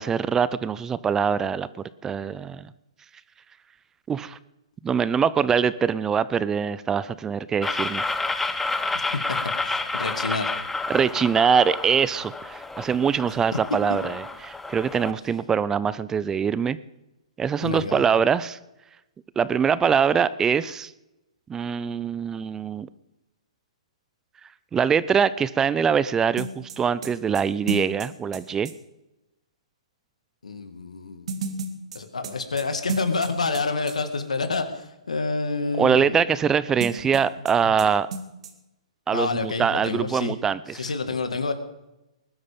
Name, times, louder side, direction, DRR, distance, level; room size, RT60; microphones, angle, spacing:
voice 1, 0.0-1.7 2.0-2.7 4.1-4.4 4.8-8.0 10.9-16.8 17.4-18.6 19.4-20.9 21.5-22.9 24.7-28.7 35.8-38.1 39.1-40.9, right 7 dB, 15° right, 17 dB, 0.5 m, -23 dB
sound 1, 7.6-15.1, left 3 dB, 5° left, 0.9 m, -30 dB
voice 2, 9.6-10.5 17.6-18.0 30.4-31.3 31.9-36.2 37.6-37.7 39.1-40.4 40.8-41.5, left 4 dB, 90° left, 9 dB, 2.2 m, -28 dB
sound 2, 26.4-28.7 31.3-33.6 33.9-34.0 36.8-37.5 37.8-37.9 38.1-38.5, right 3 dB, 65° right, 2.4 m, -32 dB
20.5 x 12.0 x 5.3 m, 0.96 s
hypercardioid pair, 135°, 3 cm